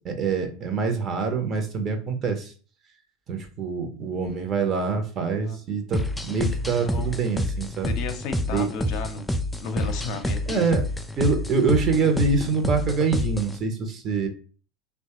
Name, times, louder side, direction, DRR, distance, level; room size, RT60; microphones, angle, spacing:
voice 1, 0.0-2.5 3.3-7.9 8.5-8.7 10.5-10.8 11.2-14.3, right 4 dB, 40° right, 5 dB, 0.7 m, -25 dB
sound 1, 5.9-13.6, left 1 dB, 5° left, 0.3 m, -28 dB
voice 2, 6.8-7.2 7.8-9.3 9.6-10.6, left 4 dB, 55° left, 6 dB, 0.5 m, -33 dB
2.9 x 2.2 x 2.8 m, 0.39 s
hypercardioid pair, 85°, 0 cm